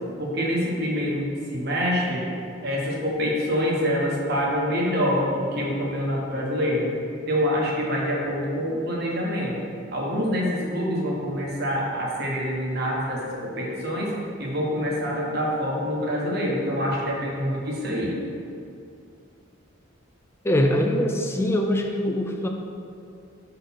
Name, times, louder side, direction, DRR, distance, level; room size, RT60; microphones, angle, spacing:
voice 1, 0.2-2.2 2.6-6.9 7.3-9.6 9.9-14.1 14.4-18.2, equal, 50° right, -3 dB, 1.2 m, -26 dB
voice 2, 20.4-22.5, left 1 dB, 10° left, 3 dB, 0.3 m, -23 dB
4.9 x 4.0 x 5.8 m, 2.6 s
head